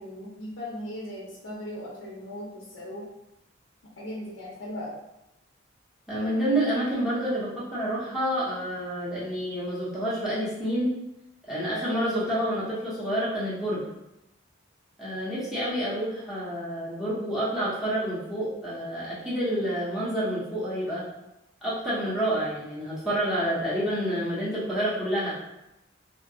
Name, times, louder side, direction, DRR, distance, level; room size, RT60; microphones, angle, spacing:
voice 1, 0.0-3.0 4.0-4.9, left 1 dB, 75° left, -5 dB, 0.6 m, -38 dB
voice 2, 6.1-10.9 11.5-13.8 15.0-21.0 21.6-25.3, equal, ahead, -11 dB, 0.8 m, -28 dB
2.7 x 2.2 x 2.6 m, 0.89 s
head